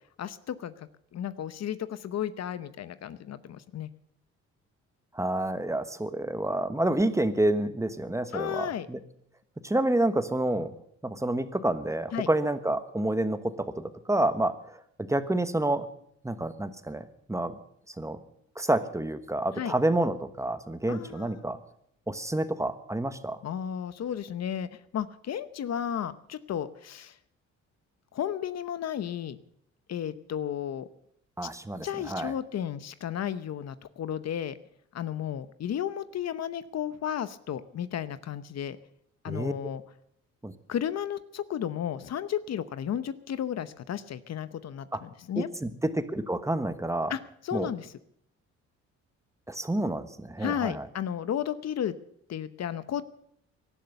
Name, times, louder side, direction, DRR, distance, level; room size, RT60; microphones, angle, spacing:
voice 1, 0.2-3.9 8.3-8.9 12.1-12.3 19.6-19.7 20.9-21.4 23.4-27.2 28.1-29.4 29.9-30.9 31.8-34.6 34.9-38.8 39.2-39.8 40.7-45.5 47.1-47.9 50.4-51.9 52.3-53.0, left 9 dB, 60° left, 14 dB, 0.9 m, -33 dB
voice 2, 5.1-9.0 9.6-10.7 11.0-14.8 15.1-15.9 16.2-17.5 18.0-18.2 18.6-21.6 22.1-23.4 31.4-32.3 39.3-39.5 40.4-40.5 44.9-45.0 45.4-47.1 47.5-47.7 49.5-50.9, right 1 dB, 10° right, 10 dB, 1.3 m, -28 dB
18.0 x 12.0 x 6.8 m, 0.70 s
cardioid pair, 90°, 30 cm